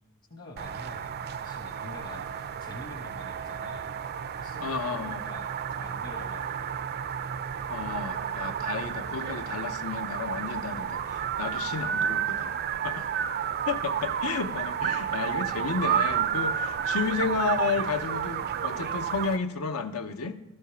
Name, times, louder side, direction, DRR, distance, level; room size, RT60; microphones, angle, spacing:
voice 1, 0.3-4.1 4.4-6.7, left 2 dB, 45° left, 2 dB, 1.1 m, -46 dB
sound 1, 0.6-19.4, right 8 dB, 45° right, 0.4 m, -31 dB
voice 2, 4.6-5.2 7.7-12.6 12.8-13.1 13.7-20.4, left 4 dB, 80° left, 9 dB, 0.8 m, -32 dB
12.5 x 5.3 x 6.8 m, 0.99 s
head